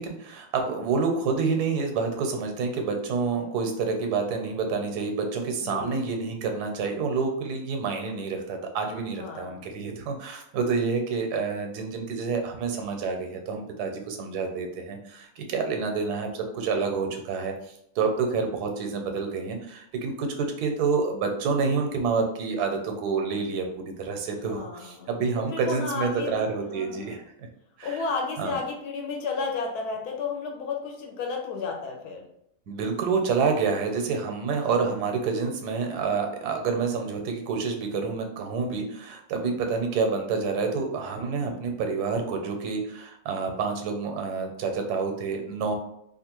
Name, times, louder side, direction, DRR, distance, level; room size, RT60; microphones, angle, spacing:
voice 1, 0.0-27.5 27.8-28.0 28.4-28.6 32.7-45.7, right 5 dB, 90° right, 4 dB, 1.2 m, -28 dB
voice 2, 5.6-6.1 9.2-9.7 24.4-26.3 26.6-27.2 27.8-32.2 34.5-35.0 41.4-41.6, left 4 dB, 85° left, 1 dB, 1.2 m, -33 dB
2.8 x 2.4 x 2.9 m, 0.74 s
omnidirectional pair, 1.6 m